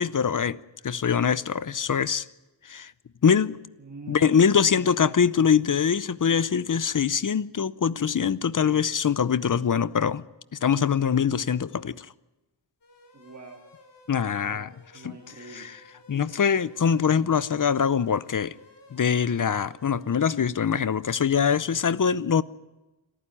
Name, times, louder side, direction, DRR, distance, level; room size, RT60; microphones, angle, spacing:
voice 1, 0.0-2.2 2.6-2.9 3.2-3.6 4.1-10.2 10.6-12.1 14.1-14.7 15.0-15.1 15.6-15.7 16.1-18.5 18.9-22.4, left 7 dB, 40° left, 0.7 m, -23 dB
voice 2, 3.8-5.0 13.1-13.7 14.5-15.7, right 3 dB, 35° right, 2.6 m, -44 dB
sound 1, 12.8-20.4, left 1 dB, 60° left, 4.0 m, -55 dB
26.0 x 14.5 x 9.9 m
wide cardioid pair, 135°, 47 cm